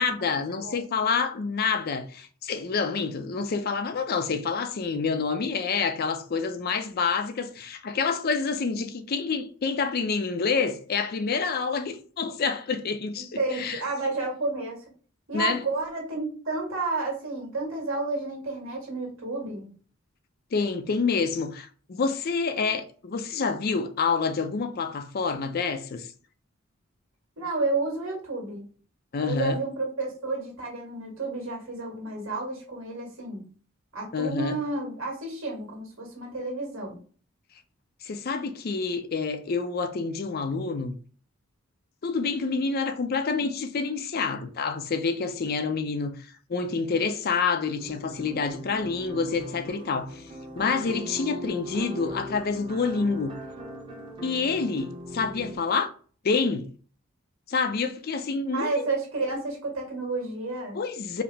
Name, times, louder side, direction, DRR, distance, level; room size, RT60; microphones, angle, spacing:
voice 1, 0.0-13.8 15.3-15.6 20.5-26.1 29.1-29.6 34.1-34.6 38.0-40.9 42.0-46.1 46.5-50.2 50.6-53.4 54.2-55.9 56.2-56.7 57.5-58.9 60.7-61.2, left 5 dB, 50° left, 0.4 m, -28 dB
voice 2, 13.4-14.8 15.3-19.7 27.4-28.6 29.2-33.4 33.9-37.0 58.5-60.8, right 3 dB, 70° right, 1.7 m, -31 dB
sound 1, 47.8-55.6, equal, 25° right, 0.8 m, -40 dB
4.8 x 2.0 x 3.3 m
head